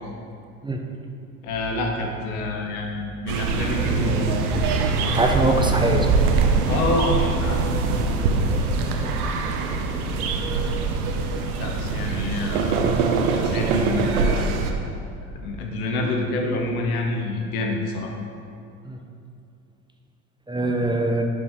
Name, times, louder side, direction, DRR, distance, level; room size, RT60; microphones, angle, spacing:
voice 1, 1.4-4.3 6.6-8.5 8.8-9.1 11.6-12.9 13.2-14.5 15.3-18.1, left 2 dB, 75° left, 2 dB, 1.3 m, -27 dB
sound 1, 3.3-14.7, right 4 dB, 80° right, 0.9 m, -23 dB
voice 2, 5.1-6.1 18.9-19.0 20.5-21.2, right 2 dB, 10° right, 2 dB, 0.7 m, -22 dB
10.5 x 5.0 x 3.7 m, 2.5 s
hypercardioid pair, 70°, 44 cm